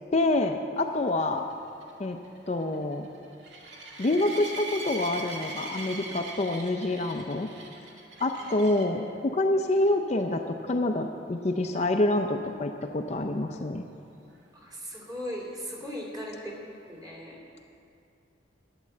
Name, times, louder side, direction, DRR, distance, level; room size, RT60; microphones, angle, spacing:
voice 1, 0.1-1.5 2.0-2.2 2.5-3.1 4.0-7.5 8.2-13.8, left 2 dB, 35° left, 5 dB, 0.5 m, -27 dB
sound 1, 1.1-9.0 9.6-9.9 10.2-10.3 10.7-10.8 14.4-14.5, right 2 dB, 75° right, 2.0 m, -41 dB
voice 2, 14.5-17.4, equal, 20° right, -2 dB, 2.4 m, -38 dB
12.0 x 9.2 x 7.6 m, 2.5 s
head